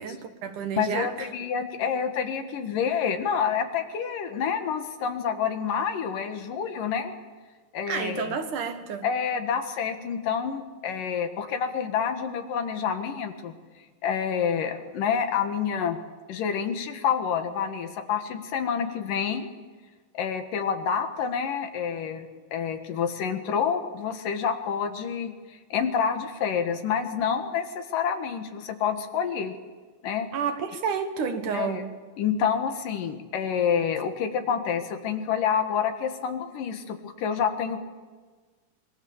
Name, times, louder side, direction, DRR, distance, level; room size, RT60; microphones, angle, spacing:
voice 1, 0.0-1.3 7.9-9.1 30.3-31.9, right 6 dB, 65° right, 2.9 m, -30 dB
voice 2, 0.8-7.1 7.7-8.2 9.0-13.5 14.0-16.0 16.3-19.5 20.1-25.3 25.7-29.5 30.0-30.3 31.5-31.8 32.2-37.8, left 7 dB, 70° left, 3.1 m, -28 dB
26.0 x 22.5 x 7.3 m
omnidirectional pair, 4.1 m